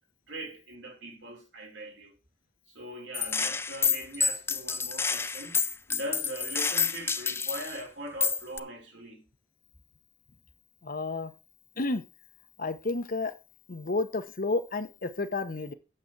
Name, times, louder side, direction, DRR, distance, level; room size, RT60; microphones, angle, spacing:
voice 1, 0.3-2.1 2.7-9.2, right 1 dB, 90° right, 5.4 m, -41 dB
Gunshot gunfire, 3.1-7.8 8.2-8.6, left 5 dB, 15° left, 0.4 m, -29 dB
voice 2, 10.8-11.3 11.8-12.0 12.6-13.3 13.7-15.7, left 3 dB, 50° left, 1.0 m, -31 dB
8.8 x 7.2 x 4.6 m
head